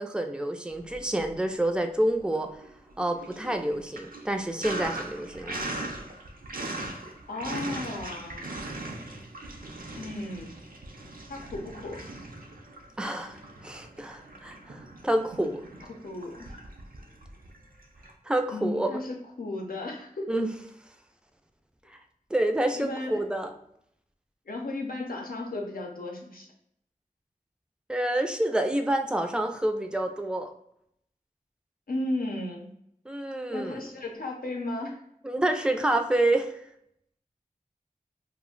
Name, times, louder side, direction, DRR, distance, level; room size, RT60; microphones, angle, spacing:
voice 1, 0.0-2.5 3.0-5.6 13.0-15.6 18.3-18.9 20.3-20.5 21.9-22.0 22.3-23.5 27.9-30.5 33.1-33.8 35.2-36.6, right 1 dB, 5° right, 5 dB, 0.3 m, -28 dB
Sink (filling or washing), 0.8-1.7 2.0-18.1, right 2 dB, 80° right, 0.5 m, -40 dB
voice 2, 7.3-8.5 9.9-10.6 11.3-12.0 16.0-16.6 18.5-20.3 22.8-23.2 24.5-26.5 31.9-32.7 33.5-35.0, left 2 dB, 85° left, 0 dB, 0.6 m, -34 dB
2.4 x 2.1 x 3.7 m, 0.74 s
wide cardioid pair, 50°, 15 cm